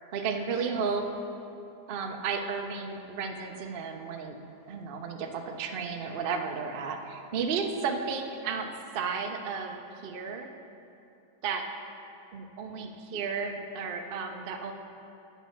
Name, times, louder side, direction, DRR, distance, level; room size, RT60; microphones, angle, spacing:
voice 1, 0.1-1.1 1.9-4.4 4.7-8.7 8.9-10.5 11.4-11.7 12.3-14.7, right 5 dB, 90° right, 4 dB, 0.4 m, -33 dB
8.0 x 7.4 x 5.7 m, 2.6 s
omnidirectional pair, 1.9 m